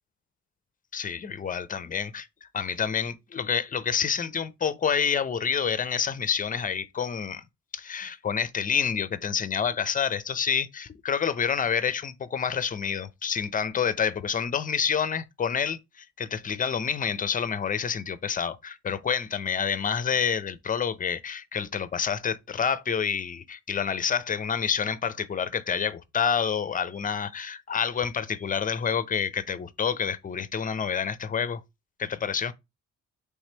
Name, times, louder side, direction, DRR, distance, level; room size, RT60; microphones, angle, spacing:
voice 1, 0.9-2.3 2.5-7.4 7.7-31.6 32.0-32.5, left 7 dB, 30° left, 0.5 m, -28 dB
3.3 x 3.1 x 4.3 m
cardioid pair, 90°, 30 cm